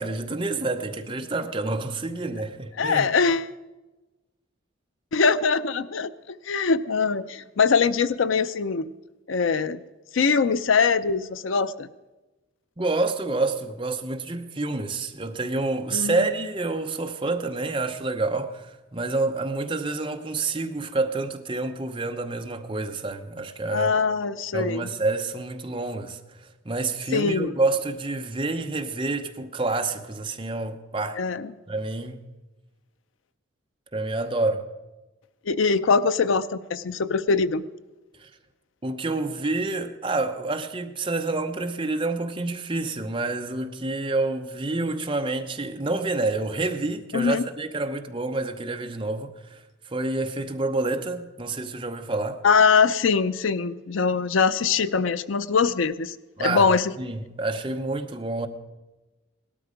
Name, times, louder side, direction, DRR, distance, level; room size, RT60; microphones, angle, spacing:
voice 1, 0.0-3.1 12.8-23.9 24.5-31.2 31.7-32.2 33.9-34.7 38.2-38.3 38.8-52.4 56.4-58.5, right 2 dB, 25° right, 0.8 m, -28 dB
voice 2, 2.8-3.5 5.1-8.9 9.3-9.8 10.1-11.9 15.9-16.2 23.7-24.9 27.1-27.5 31.2-31.5 35.5-37.6 47.1-47.5 52.4-56.9, left 5 dB, 75° left, 0.5 m, -22 dB
17.5 x 12.5 x 5.0 m
head